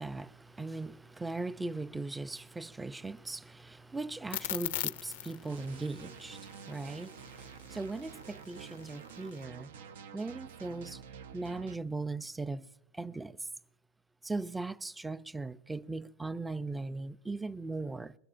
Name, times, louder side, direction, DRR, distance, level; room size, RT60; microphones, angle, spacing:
voice 1, 0.0-9.7 10.1-11.0 11.3-12.7 12.9-13.5 14.2-18.2, right 3 dB, 10° right, 0.4 m, -39 dB
sound 1, 4.3-9.5, left 14 dB, 80° left, 0.4 m, -40 dB
sound 2, 5.5-11.8, right 7 dB, 80° right, 0.6 m, -49 dB
23.0 x 21.5 x 2.5 m
hypercardioid pair, 105°, 0 cm